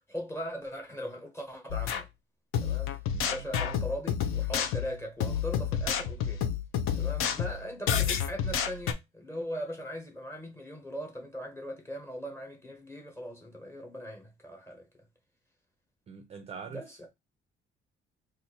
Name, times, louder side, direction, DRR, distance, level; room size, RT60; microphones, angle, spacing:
voice 1, 0.1-2.1 2.6-2.9 3.3-6.5 6.9-14.9 16.7-17.1, equal, 10° left, 1.0 m, -39 dB
sound 1, 1.7-2.0 2.5-8.9, left 8 dB, 85° left, 0.6 m, -30 dB
voice 2, 16.1-16.8, right 6 dB, 30° right, 0.4 m, -43 dB
2.8 x 2.5 x 4.2 m
cardioid pair, 170°, 21 cm